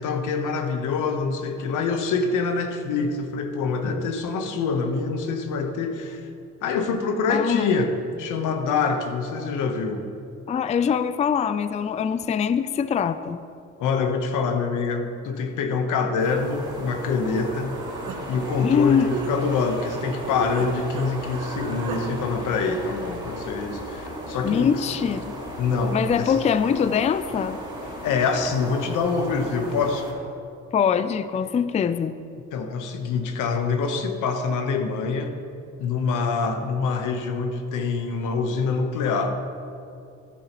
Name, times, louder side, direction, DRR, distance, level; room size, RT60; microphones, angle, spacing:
voice 1, 0.0-6.2 6.6-10.1 13.8-17.8 18.3-24.8 25.6-26.3 28.0-30.1 32.5-35.3 35.8-39.3, left 4 dB, 90° left, 6 dB, 1.1 m, -25 dB
voice 2, 7.3-7.7 10.5-13.4 18.6-19.2 24.4-25.3 25.9-27.6 30.7-32.1, left 7 dB, 25° left, 13 dB, 0.3 m, -23 dB
sound 1, 16.2-30.1, equal, 15° right, 2.8 m, -36 dB
Human voice, 17.3-20.7 20.9-22.0, right 5 dB, 85° right, 1.5 m, -35 dB
14.0 x 10.0 x 3.0 m, 2.5 s
cardioid pair, 90°, 30 cm